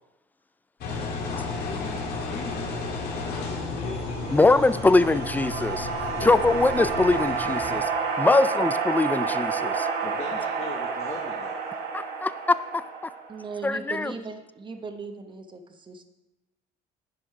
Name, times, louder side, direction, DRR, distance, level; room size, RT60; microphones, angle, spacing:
Engine, 0.8-7.8, left 3 dB, 70° left, 2.4 m, -33 dB
voice 1, 1.3-2.9 3.2-5.0 6.1-6.4 8.2-8.7 10.0-11.8, left 5 dB, 40° left, -1 dB, 1.2 m, -41 dB
sound 1, 4.0-13.5, right 5 dB, 75° right, 1.4 m, -30 dB
voice 2, 4.3-7.9 8.2-9.9 11.9-12.8 13.6-14.1, left 3 dB, 10° left, 14 dB, 0.3 m, -22 dB
voice 3, 13.3-16.0, right 4 dB, 30° right, 6 dB, 1.0 m, -38 dB
10.5 x 5.1 x 4.8 m, 1.0 s
cardioid pair, 110°, 17 cm